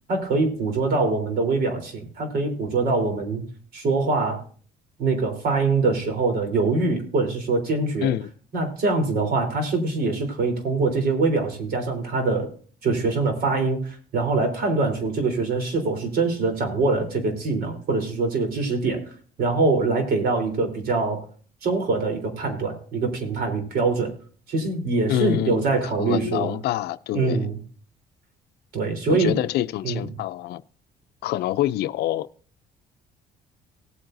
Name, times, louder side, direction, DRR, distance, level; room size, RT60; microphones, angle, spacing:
voice 1, 0.1-3.4 3.7-4.4 5.0-8.1 8.5-12.5 12.8-19.0 19.4-21.2 21.6-24.1 24.5-26.6 27.1-27.6 28.7-29.3 29.8-30.1, right 3 dB, 65° right, 3.6 m, -24 dB
voice 2, 25.1-25.7 26.0-27.4 29.1-30.6 31.2-32.3, left 13 dB, 75° left, 0.5 m, -26 dB
18.5 x 8.7 x 2.6 m
cardioid pair, 110°, 17 cm